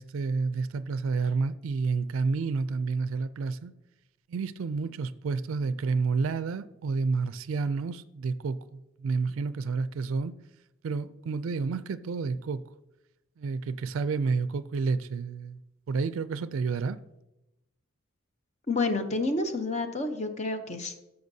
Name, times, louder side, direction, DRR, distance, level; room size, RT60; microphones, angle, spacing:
voice 1, 0.0-3.7 4.3-10.3 10.8-12.6 13.4-15.6 15.9-17.0, right 4 dB, 75° right, 0.3 m, -30 dB
voice 2, 18.7-21.0, left 3 dB, 35° left, 0.6 m, -29 dB
13.0 x 6.8 x 2.7 m
head